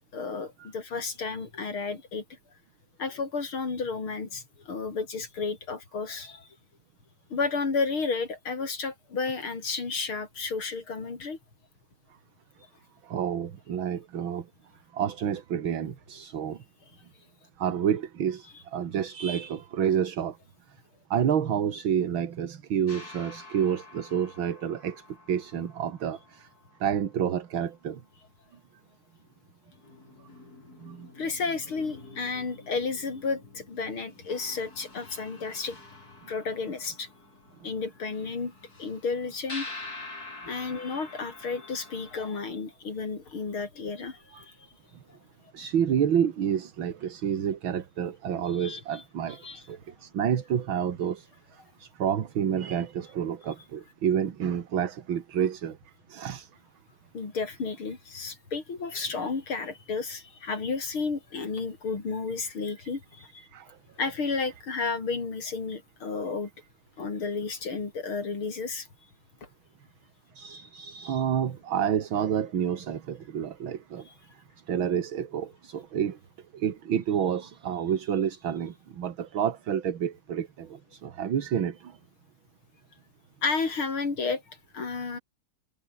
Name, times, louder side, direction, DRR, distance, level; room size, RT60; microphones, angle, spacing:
voice 1, 0.1-2.2 3.0-6.5 7.3-11.4 31.2-35.8 36.3-37.1 37.6-38.5 38.8-39.7 40.5-44.5 48.6-49.0 49.4-49.6 57.1-63.4 64.0-66.5 67.0-68.9 74.1-74.2 83.4-85.2, left 4 dB, 75° left, 4.7 m, -32 dB
voice 2, 13.0-14.5 14.9-16.6 17.6-20.4 21.1-26.5 26.8-28.0 30.8-31.1 44.3-44.4 45.5-55.8 56.1-56.5 63.5-63.8 70.3-74.1 74.7-76.2 76.5-82.0, right 8 dB, 70° right, 2.4 m, -29 dB
sound 1, 22.9-27.7 29.2-29.3 29.7-42.2, left 3 dB, 45° left, 5.2 m, -47 dB
omnidirectional pair, 2.3 m